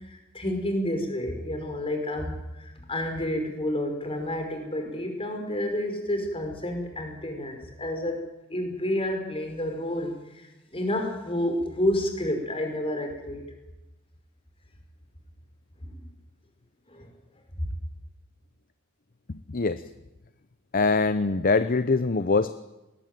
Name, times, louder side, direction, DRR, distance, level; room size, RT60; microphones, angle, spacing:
voice 1, 0.1-13.5 15.8-15.9 16.9-17.1 17.6-17.7, left 1 dB, 25° left, 4 dB, 5.2 m, -30 dB
voice 2, 19.5-19.8 20.7-22.6, left 3 dB, 45° left, 12 dB, 0.7 m, -23 dB
20.0 x 20.0 x 9.3 m, 1.0 s
head